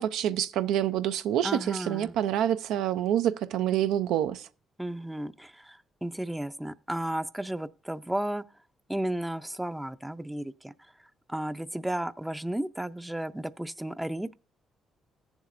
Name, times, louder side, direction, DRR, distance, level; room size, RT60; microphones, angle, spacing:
voice 1, 0.0-4.5, right 11 dB, 90° right, 0.4 m, -27 dB
voice 2, 1.4-2.1 4.8-8.4 8.9-10.7 11.3-14.3, right 1 dB, 5° right, 0.4 m, -33 dB
16.5 x 7.1 x 2.5 m
cardioid pair, 90°, 0 cm